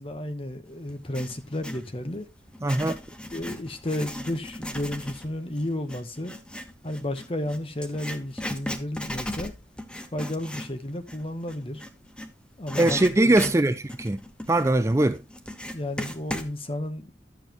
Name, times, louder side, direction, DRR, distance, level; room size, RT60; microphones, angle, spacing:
voice 1, 0.0-2.3 3.3-6.3 6.8-9.5 10.1-11.8 12.6-13.5 15.7-17.1, left 1 dB, 30° left, 1.0 m, -32 dB
Writing, 0.9-1.9 2.5-12.3 12.7-16.5, left 1 dB, 5° left, 0.7 m, -37 dB
voice 2, 2.6-3.0 12.8-14.2 14.5-15.2, right 2 dB, 15° right, 0.4 m, -21 dB
11.5 x 7.1 x 3.0 m
head